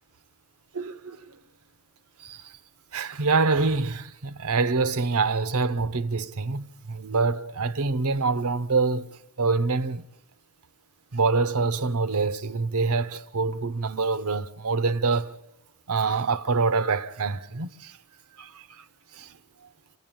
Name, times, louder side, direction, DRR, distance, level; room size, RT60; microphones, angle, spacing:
voice 1, 0.7-1.2 2.2-2.4 2.9-9.1 9.4-10.1 11.1-15.4 15.9-17.9 18.4-18.5 19.1-19.3, right 4 dB, 75° right, 0.9 m, -25 dB
26.5 x 16.5 x 8.9 m
head